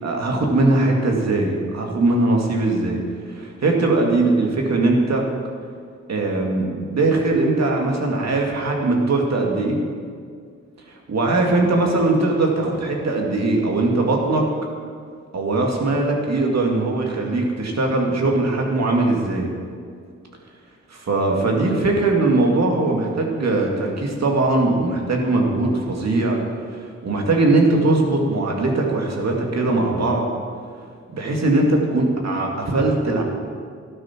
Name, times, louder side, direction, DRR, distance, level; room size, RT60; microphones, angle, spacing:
voice 1, 0.0-3.0 3.3-5.2 6.1-9.8 11.1-14.5 15.3-19.5 20.9-26.4 26.7-30.3 31.1-33.2, right 2 dB, 65° right, 0 dB, 2.5 m, -20 dB
14.5 x 12.0 x 4.6 m, 2.1 s
cardioid pair, 70°, 29 cm